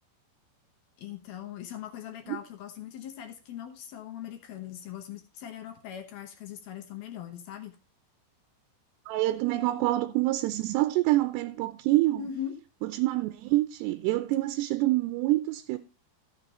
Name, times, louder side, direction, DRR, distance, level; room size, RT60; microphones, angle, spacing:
voice 1, 1.0-7.8 12.2-12.6, left 10 dB, 70° left, 2.7 m, -40 dB
voice 2, 9.1-12.3 12.8-15.8, right 17 dB, 80° right, 2.7 m, -26 dB
14.0 x 6.8 x 4.2 m
omnidirectional pair, 5.0 m